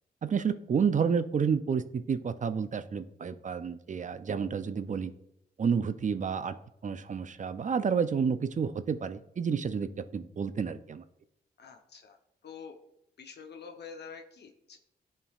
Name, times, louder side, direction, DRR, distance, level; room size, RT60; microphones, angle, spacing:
voice 1, 0.2-5.1 5.6-6.6 6.8-11.0, right 6 dB, 45° right, 13 dB, 0.5 m, -30 dB
voice 2, 11.6-12.2 12.4-12.8 13.2-14.8, left 6 dB, 65° left, 4 dB, 0.8 m, -46 dB
11.0 x 4.4 x 2.4 m, 0.80 s
cardioid pair, 55°, 18 cm